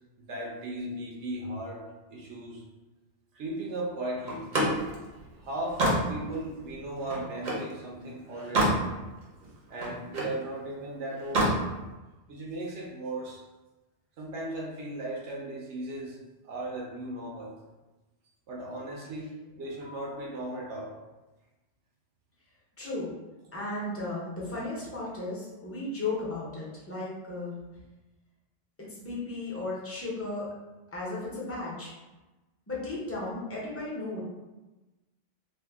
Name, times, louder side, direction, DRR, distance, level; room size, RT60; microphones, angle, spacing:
voice 1, 0.3-1.8 2.1-2.6 3.3-4.5 5.4-8.8 9.7-11.5 12.3-13.4 14.2-16.2 16.4-17.5 18.5-20.9, right 1 dB, 75° right, -2 dB, 0.9 m, -36 dB
Slam, 4.3-7.7 8.2-8.8 9.2-10.4 11.2-11.6, right 1 dB, 45° right, 0.7 m, -28 dB
voice 2, 22.8-23.1 23.5-27.5 28.8-30.5 30.9-32.0 32.7-34.2, left 2 dB, 15° left, -6 dB, 0.6 m, -35 dB
2.6 x 2.3 x 3.4 m, 1.1 s
omnidirectional pair, 1.2 m